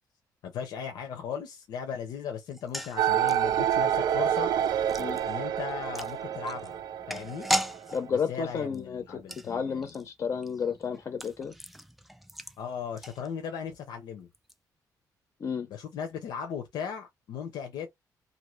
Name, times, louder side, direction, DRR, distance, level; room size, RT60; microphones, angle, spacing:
voice 1, 0.4-4.5 5.2-6.8 7.1-7.5 8.1-9.9 12.6-14.3 15.7-17.9, left 7 dB, 80° left, 0.7 m, -37 dB
sound 1, 2.5-13.7 14.0-14.1 14.3-14.5, equal, ahead, 0.3 m, -38 dB
sound 2, 3.0-8.1, right 10 dB, 70° right, 0.4 m, -28 dB
voice 2, 7.9-11.5 15.4-15.7, left 6 dB, 40° left, 0.6 m, -32 dB
2.6 x 2.6 x 3.0 m
cardioid pair, 160°, 7 cm